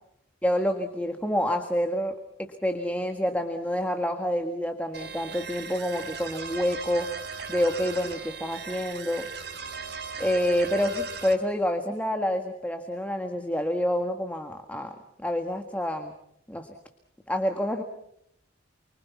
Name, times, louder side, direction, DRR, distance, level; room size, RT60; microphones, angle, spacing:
voice 1, 0.4-7.1 7.5-9.3 10.2-14.9 15.2-16.1 16.5-16.7 17.3-17.8, equal, 10° left, 5 dB, 1.6 m, -28 dB
sound 1, 4.9-11.3, right 5 dB, 60° right, 3.9 m, -38 dB
29.5 x 24.0 x 5.8 m, 0.72 s
head